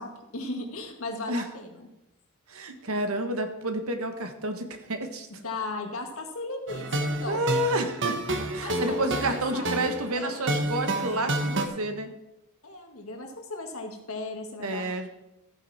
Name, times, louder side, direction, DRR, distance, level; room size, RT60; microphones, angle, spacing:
voice 1, 0.0-1.9 5.4-7.4 8.6-9.8 10.2-10.6 12.6-14.9, left 2 dB, 70° left, 3 dB, 2.1 m, -37 dB
voice 2, 2.5-5.3 7.3-8.2 8.5-12.1 14.6-15.1, right 1 dB, 75° right, 7 dB, 1.5 m, -29 dB
sound 1, 6.7-11.7, right 1 dB, 55° right, 1.3 m, -29 dB
14.0 x 9.1 x 4.3 m, 0.92 s
head